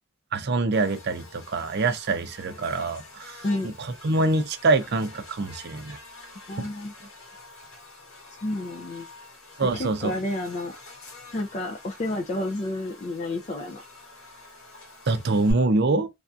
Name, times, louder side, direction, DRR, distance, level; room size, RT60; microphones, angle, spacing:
voice 1, 0.3-3.7 4.0-6.0 6.6-6.7 9.6-10.1 15.1-16.1, right 3 dB, 55° right, 0.5 m, -25 dB
Buzz, 0.7-15.5, left 2 dB, 80° left, 1.6 m, -46 dB
voice 2, 6.5-6.9 8.4-9.1 9.7-10.7 11.3-14.1, left 2 dB, 35° left, 0.4 m, -30 dB
3.4 x 2.6 x 2.3 m
head